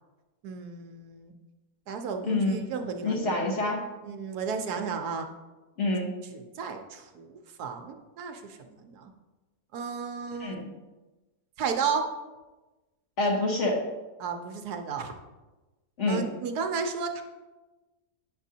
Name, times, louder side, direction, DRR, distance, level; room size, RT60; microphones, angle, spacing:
voice 1, 0.4-1.3 1.9-3.2 4.0-5.3 6.3-7.3 7.6-8.4 8.7-9.1 9.7-10.6 11.6-12.1 14.2-15.1 16.1-17.2, right 5 dB, 75° right, 5 dB, 1.2 m, -33 dB
voice 2, 2.2-2.5 3.0-3.9 5.8-6.1 10.4-10.7 13.2-13.8 16.0-16.2, left 2 dB, 50° left, 0 dB, 1.2 m, -27 dB
9.1 x 6.0 x 2.8 m, 1.1 s
omnidirectional pair, 1.7 m